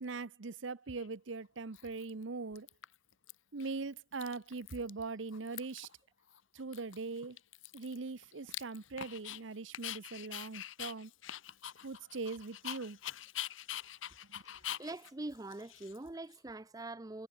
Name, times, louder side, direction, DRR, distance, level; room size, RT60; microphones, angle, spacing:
voice 1, 0.0-2.7 3.5-5.9 6.5-7.4 7.7-11.1 11.8-13.0 14.3-14.4, right 3 dB, 75° right, 0.8 m, -41 dB
Dog, 1.0-1.1 1.7-2.2 2.5-3.3 3.6-3.7 4.0-5.0 5.3-5.9 6.3-6.4 6.7-9.4 9.7-16.4, left 12 dB, 80° left, 1.0 m, -45 dB
voice 2, 14.8-17.3, right 2 dB, 20° right, 0.6 m, -43 dB
head